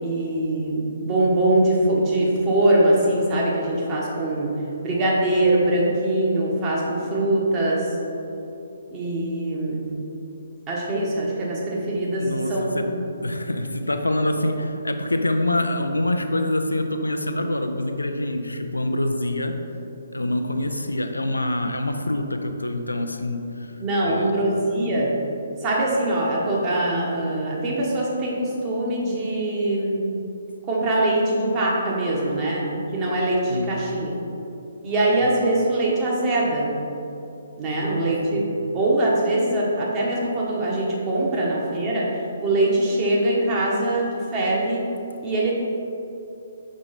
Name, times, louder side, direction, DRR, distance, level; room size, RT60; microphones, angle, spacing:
voice 1, 0.0-4.5 4.8-7.9 8.9-9.9 10.7-13.0 23.8-25.1 25.6-30.0 30.7-32.7 32.9-34.2 34.8-36.7 37.6-38.4 38.7-42.1 42.4-44.8 45.2-45.6, right 1 dB, 20° right, -4 dB, 1.3 m, -22 dB
voice 2, 12.1-12.9 13.2-19.6 20.1-23.7 24.0-24.3 30.9-31.0 32.2-32.4 33.5-33.7 37.7-38.4, left 1 dB, 80° left, 5 dB, 0.5 m, -26 dB
6.2 x 4.9 x 4.2 m, 2.9 s
figure-of-eight pair, 135°, 0 cm